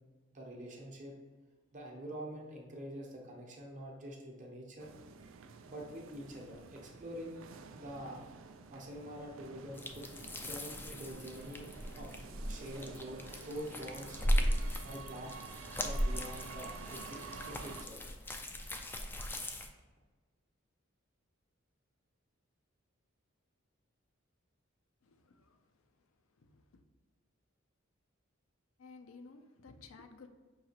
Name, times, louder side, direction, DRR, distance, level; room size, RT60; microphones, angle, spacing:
voice 1, 0.3-1.1 1.7-4.9 5.7-7.4 7.7-8.2 8.7-10.1 10.5-11.7 12.0-14.2 14.8-15.3 15.7-18.1, equal, 40° right, 0 dB, 0.9 m, -46 dB
sound 1, 4.8-17.9, right 5 dB, 70° right, 0.4 m, -50 dB
sound 2, 9.7-19.7, equal, 10° left, 0.3 m, -37 dB
voice 2, 25.0-26.8 28.8-30.3, left 4 dB, 80° left, 7 dB, 0.5 m, -56 dB
5.5 x 2.8 x 2.8 m, 1.3 s
head